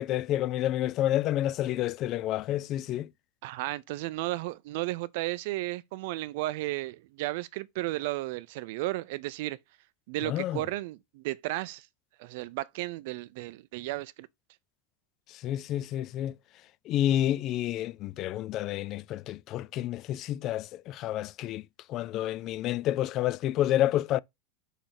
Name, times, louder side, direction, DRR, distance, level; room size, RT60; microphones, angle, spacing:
voice 1, 0.0-3.1 10.2-10.6 15.3-16.3 16.9-21.6 21.9-24.2, left 13 dB, 35° left, 0.3 m, -29 dB
voice 2, 3.4-9.6 10.1-11.9 12.2-14.3, right 18 dB, 60° right, 0.5 m, -34 dB
5.0 x 4.1 x 5.8 m
supercardioid pair, 150°, 0 cm